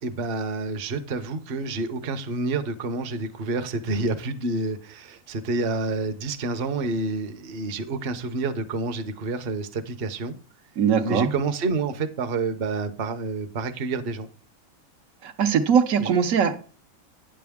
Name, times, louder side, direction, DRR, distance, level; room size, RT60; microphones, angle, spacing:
voice 1, 0.0-10.3 11.0-14.3 16.0-16.1, right 3 dB, 50° right, 0.9 m, -28 dB
voice 2, 10.8-11.3 15.2-16.5, right 7 dB, 85° right, 1.3 m, -21 dB
9.4 x 7.7 x 3.5 m
omnidirectional pair, 1.4 m